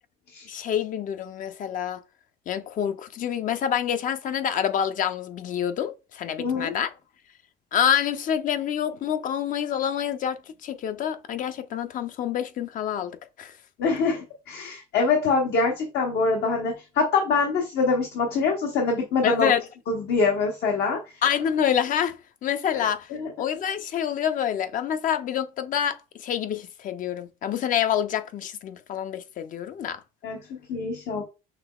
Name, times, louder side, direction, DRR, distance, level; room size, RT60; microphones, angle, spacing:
voice 1, 0.5-2.0 2.5-6.9 7.7-13.5 19.2-19.6 21.2-23.1 23.4-30.0, left 9 dB, 55° left, 0.5 m, -27 dB
voice 2, 6.4-6.7 13.8-19.5 19.9-21.1 22.7-23.3 30.2-31.2, left 4 dB, 75° left, 0.9 m, -25 dB
5.9 x 2.9 x 2.3 m
cardioid pair, 110°, 17 cm